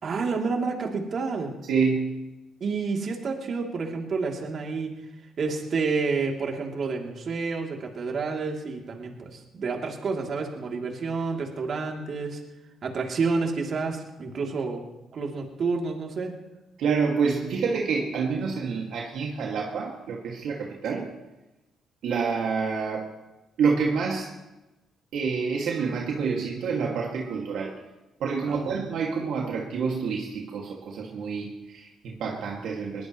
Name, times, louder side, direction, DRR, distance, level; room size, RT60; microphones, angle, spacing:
voice 1, 0.0-1.5 2.6-4.9 5.4-12.4 12.8-14.8 15.1-16.3 28.5-28.7, right 4 dB, 55° right, 1 dB, 3.0 m, -29 dB
voice 2, 1.7-2.1 16.8-21.1 22.0-23.1 23.6-24.3 25.1-27.7 28.2-33.1, right 5 dB, 75° right, -1 dB, 2.2 m, -27 dB
21.5 x 19.0 x 3.1 m, 1.0 s
cardioid pair, 90°, 0 cm